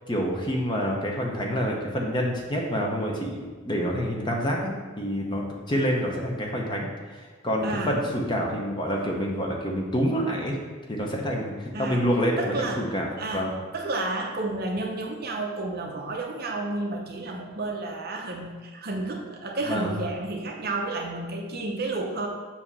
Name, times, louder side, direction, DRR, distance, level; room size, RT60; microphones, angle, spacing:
voice 1, 0.1-6.9 7.1-10.6 10.9-13.5 19.7-19.9, equal, 20° left, 0 dB, 0.8 m, -27 dB
voice 2, 7.6-8.0 11.7-12.1 12.4-12.9 13.2-22.3, right 2 dB, 45° right, 1 dB, 0.7 m, -31 dB
7.3 x 2.9 x 5.5 m, 1.5 s
head